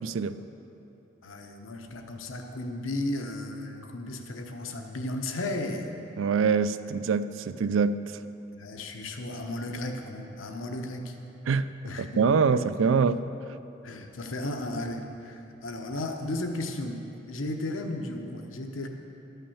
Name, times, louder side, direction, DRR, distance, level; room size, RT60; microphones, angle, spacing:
voice 1, 0.0-0.3 6.2-8.0 11.5-13.2, right 5 dB, 80° right, 14 dB, 0.4 m, -25 dB
voice 2, 1.2-5.9 8.5-11.2 11.8-12.1 13.8-18.9, left 1 dB, 85° left, 4 dB, 0.9 m, -34 dB
12.5 x 5.7 x 7.1 m, 2.9 s
head